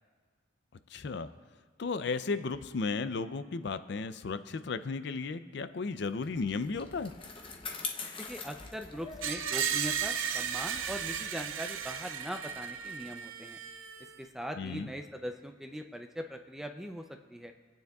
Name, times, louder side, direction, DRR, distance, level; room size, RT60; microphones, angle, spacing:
voice 1, 0.9-1.3 1.8-7.1 14.6-14.9, left 4 dB, 60° left, 12 dB, 0.4 m, -34 dB
Bicycle, 6.0-12.8, left 4 dB, 25° left, 0.7 m, -45 dB
voice 2, 8.2-13.6 14.2-17.5, equal, ahead, 5 dB, 0.4 m, -41 dB
Screech, 9.2-14.2, right 8 dB, 90° right, 0.5 m, -35 dB
25.5 x 9.0 x 2.3 m, 1.5 s
head